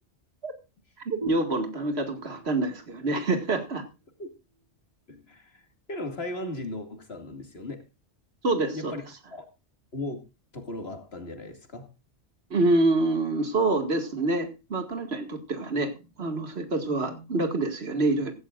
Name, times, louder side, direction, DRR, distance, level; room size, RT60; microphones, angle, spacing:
voice 1, 1.1-3.8 8.4-8.9 12.5-18.3, right 2 dB, 65° right, 2.3 m, -26 dB
sound 1, 1.2-4.6, right 3 dB, 25° right, 2.7 m, -41 dB
voice 2, 5.1-7.8 8.7-9.0 9.3-9.5 9.9-10.2 10.5-11.9, left 2 dB, 65° left, 2.6 m, -37 dB
16.0 x 14.5 x 2.5 m
omnidirectional pair, 1.2 m